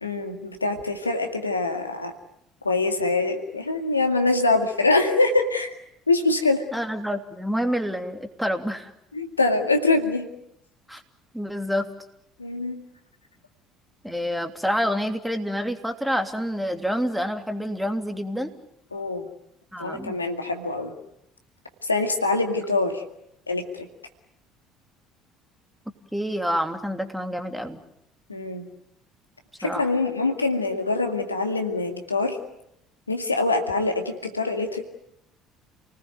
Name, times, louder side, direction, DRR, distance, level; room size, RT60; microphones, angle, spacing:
voice 1, 0.0-2.1 2.6-5.7 6.1-6.6 9.1-10.3 12.4-12.8 18.9-19.3 19.8-20.9 21.9-23.0 23.5-23.9 28.3-28.7 29.6-32.4 33.1-34.9, left 3 dB, 85° left, 5 dB, 2.1 m, -24 dB
voice 2, 6.7-8.9 10.9-11.0 11.3-11.9 14.0-18.5 19.7-20.2 26.1-27.8 29.6-29.9, equal, ahead, 6 dB, 2.9 m, -27 dB
29.5 x 19.5 x 9.4 m, 0.80 s
figure-of-eight pair, 60°, 0 cm